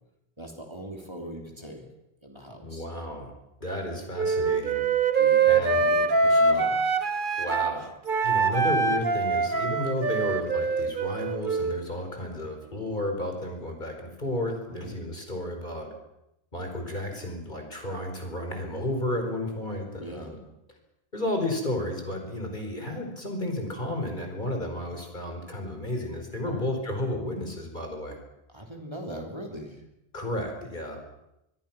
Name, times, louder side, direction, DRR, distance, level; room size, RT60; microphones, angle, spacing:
voice 1, 0.4-1.9 2.2-2.9 3.8-3.9 5.2-6.9 14.7-14.9 20.0-20.3 26.4-26.7 28.5-29.8, right 1 dB, 25° right, 2 dB, 3.2 m, -40 dB
voice 2, 2.6-3.3 3.6-4.9 5.4-5.9 7.4-7.9 8.2-15.9 16.5-20.4 21.1-28.2 30.1-31.0, left 1 dB, 50° left, 3 dB, 4.8 m, -32 dB
Wind instrument woodwind instrument, 4.2-7.7 8.1-11.8, right 4 dB, 55° right, 1.7 m, -24 dB
26.0 x 20.5 x 6.1 m, 0.86 s
omnidirectional pair, 1.0 m